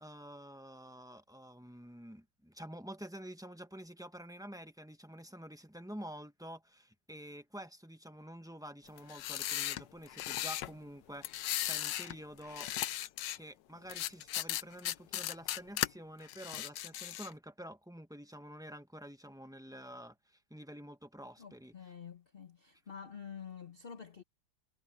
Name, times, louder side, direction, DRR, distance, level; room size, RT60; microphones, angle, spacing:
voice 1, 0.0-12.7 13.3-21.7, equal, 5° right, 0.7 m, -49 dB
sound 1, 9.0-10.7 11.2-12.2 12.4-13.4 13.9-15.9 16.3-17.3, left 13 dB, 75° left, 1.3 m, -37 dB
voice 2, 21.4-24.2, left 7 dB, 40° left, 1.0 m, -48 dB
omnidirectional pair, 2.0 m